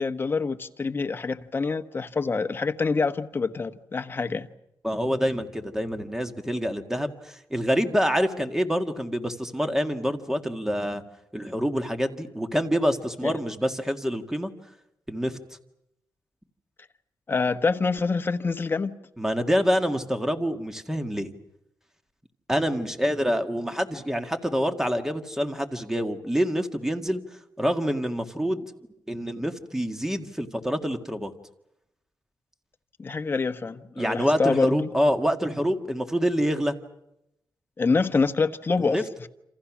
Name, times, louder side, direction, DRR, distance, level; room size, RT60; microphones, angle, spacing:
voice 1, 0.0-4.5 13.2-13.3 17.3-19.0 33.0-34.9 37.8-39.0, left 4 dB, 30° left, 1.2 m, -26 dB
voice 2, 4.8-11.0 11.3-14.5 15.1-15.4 19.2-21.3 22.5-27.2 27.6-28.6 29.1-31.3 34.0-36.8 38.8-39.3, equal, 5° right, 1.9 m, -26 dB
28.0 x 27.0 x 6.2 m
wide cardioid pair, 140°, 7 cm